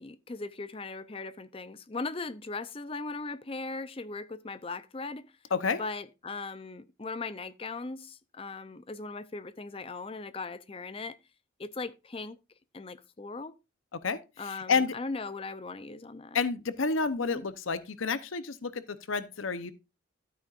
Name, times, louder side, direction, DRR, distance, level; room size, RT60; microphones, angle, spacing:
voice 1, 0.0-5.3 5.8-11.2 11.6-12.4 12.7-13.5 14.4-16.4 17.2-17.4, left 3 dB, 30° left, 0.5 m, -39 dB
voice 2, 5.5-5.8 13.9-14.9 16.3-19.7, left 4 dB, 90° left, 0.8 m, -30 dB
12.5 x 8.7 x 2.5 m
head